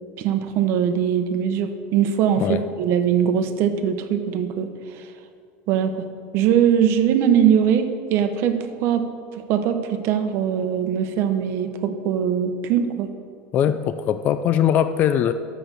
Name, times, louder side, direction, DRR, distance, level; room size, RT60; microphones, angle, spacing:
voice 1, 0.2-5.1 5.7-6.1 6.3-9.0 9.4-13.1, right 8 dB, 40° right, 8 dB, 0.9 m, -21 dB
voice 2, 13.5-15.3, left 10 dB, 30° left, 11 dB, 0.3 m, -20 dB
11.0 x 7.6 x 6.7 m, 2.3 s
supercardioid pair, 170°, 6 cm